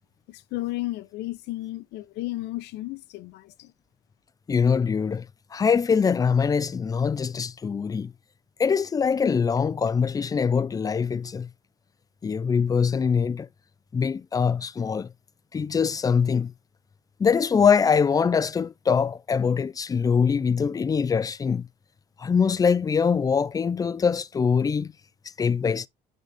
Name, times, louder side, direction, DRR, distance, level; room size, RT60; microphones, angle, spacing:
voice 1, 0.3-3.7, left 18 dB, 85° left, 0.7 m, -33 dB
voice 2, 4.5-5.3 5.5-8.1 8.6-11.5 12.2-13.5 13.9-15.1 15.5-16.5 17.2-21.7 22.2-24.9 25.4-25.9, left 6 dB, 20° left, 0.4 m, -23 dB
9.9 x 4.0 x 3.5 m
cardioid pair, 110°, 17 cm